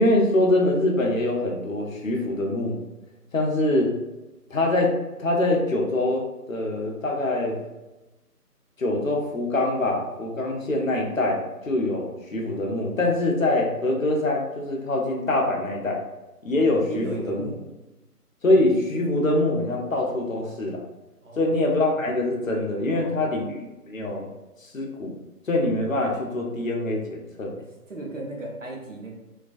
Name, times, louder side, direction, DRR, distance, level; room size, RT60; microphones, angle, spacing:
voice 1, 0.0-2.8 3.3-3.9 4.5-4.9 5.2-7.6 8.8-16.0 16.4-17.4 18.4-20.8 21.4-23.6 23.9-24.3 24.6-25.1 25.4-27.5, left 2 dB, 55° left, -1 dB, 0.6 m, -24 dB
voice 2, 16.9-17.6 21.2-21.5 22.9-23.5 27.5-29.1, right 2 dB, 55° right, -1 dB, 0.6 m, -36 dB
2.3 x 2.2 x 2.4 m, 1.1 s
figure-of-eight pair, 160°, 47 cm